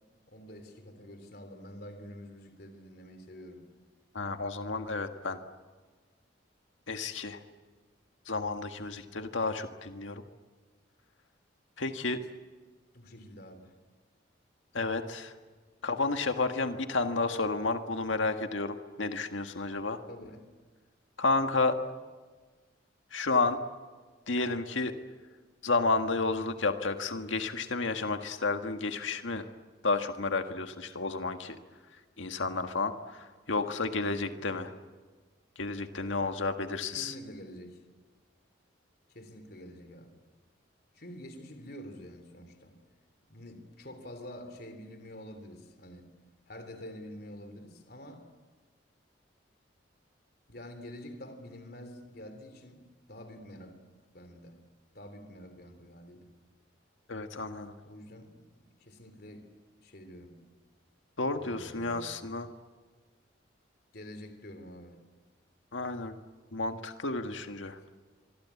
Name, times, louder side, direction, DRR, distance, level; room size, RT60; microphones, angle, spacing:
voice 1, 0.3-3.7 12.9-13.7 20.1-20.5 33.6-33.8 34.4-34.6 37.0-37.8 39.1-40.1 40.9-42.8 43.3-46.1 46.5-48.2 50.5-52.8 53.1-53.7 54.1-54.6 55.0-56.3 57.8-58.3 58.8-59.5 59.8-60.4 61.4-62.2 63.9-65.0, equal, 50° left, 7 dB, 3.4 m, -47 dB
voice 2, 4.1-5.4 6.9-7.4 8.3-10.2 11.8-12.2 14.7-15.3 15.8-20.0 21.2-21.8 23.1-23.6 24.3-24.9 25.6-29.4 29.8-31.6 32.2-34.7 35.6-37.1 57.1-57.8 61.2-62.5 65.7-66.1 66.5-67.8, left 3 dB, 80° left, 6 dB, 1.7 m, -31 dB
25.0 x 24.0 x 8.5 m, 1.4 s
head